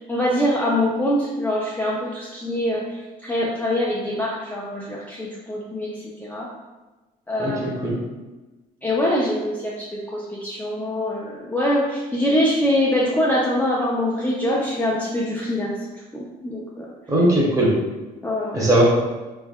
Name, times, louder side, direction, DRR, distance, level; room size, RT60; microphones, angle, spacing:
voice 1, 0.1-6.5 7.3-7.6 8.8-15.8 16.1-16.9 18.2-18.7, left 1 dB, 10° left, -5 dB, 0.5 m, -24 dB
voice 2, 7.4-8.0 17.1-17.7 18.5-18.8, right 1 dB, 20° right, -5 dB, 1.2 m, -19 dB
3.5 x 3.4 x 2.3 m, 1.1 s
cardioid pair, 110°, 17 cm